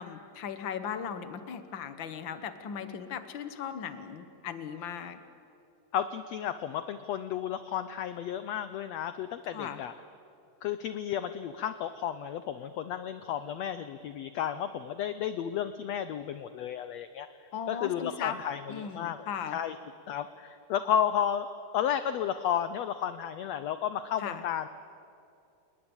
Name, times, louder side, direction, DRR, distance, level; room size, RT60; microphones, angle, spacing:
voice 1, 0.0-5.2 9.5-9.8 17.5-18.4 18.7-19.6 24.2-24.4, left 7 dB, 65° left, 10 dB, 1.2 m, -37 dB
voice 2, 5.9-9.9 10.6-17.3 17.7-19.8 20.1-21.5 21.7-24.7, left 9 dB, 85° left, 12 dB, 1.5 m, -32 dB
28.5 x 20.0 x 8.9 m, 2.6 s
omnidirectional pair, 3.9 m